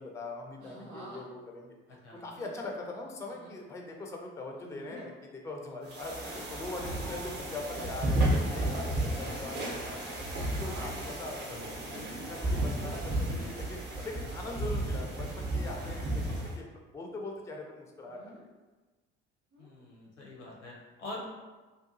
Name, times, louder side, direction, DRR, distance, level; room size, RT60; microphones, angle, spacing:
voice 1, 0.0-1.8 2.2-10.2 10.6-11.6 11.9-16.7 16.9-18.4, left 2 dB, 10° left, 1 dB, 0.4 m, -42 dB
sound 1, 0.6-1.2 2.2-2.7 3.3-3.6 4.6-5.1 5.7-5.9 6.7-7.6 7.9-8.9 9.3-9.8 10.4-10.9 11.9-13.5 14.7-15.1 15.7-16.1 16.4-16.5 18.0-18.4 19.5-19.8, equal, 75° right, 0.8 m, -48 dB
sound 2, 5.9-16.6, right 1 dB, 30° right, 0.7 m, -33 dB
voice 2, 19.6-21.3, left 2 dB, 90° left, -3 dB, 0.7 m, -44 dB
2.6 x 2.3 x 2.6 m, 1.2 s
hypercardioid pair, 55°, 34 cm